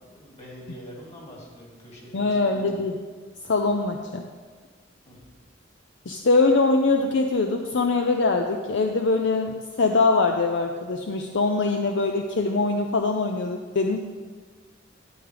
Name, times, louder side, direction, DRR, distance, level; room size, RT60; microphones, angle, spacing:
voice 1, 0.0-2.6 5.1-5.2, equal, 35° left, -3 dB, 2.6 m, -44 dB
voice 2, 2.1-3.0 3.5-4.2 6.1-14.0, left 3 dB, 65° left, 4 dB, 0.6 m, -23 dB
12.5 x 9.6 x 3.4 m, 1.5 s
head